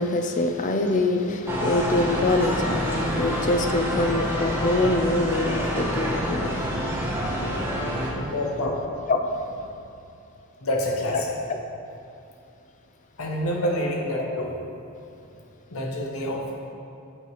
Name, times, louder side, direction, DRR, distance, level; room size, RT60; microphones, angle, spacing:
voice 1, 0.0-7.3 7.6-7.7 9.1-9.2, left 2 dB, 35° left, 5 dB, 0.5 m, -25 dB
sound 1, 1.5-8.1, equal, 10° right, 0.8 m, -27 dB
voice 2, 8.1-8.8 10.6-11.3 13.2-14.5 15.7-16.7, left 1 dB, 70° left, -1 dB, 0.9 m, -27 dB
8.1 x 3.1 x 5.6 m, 2.6 s
head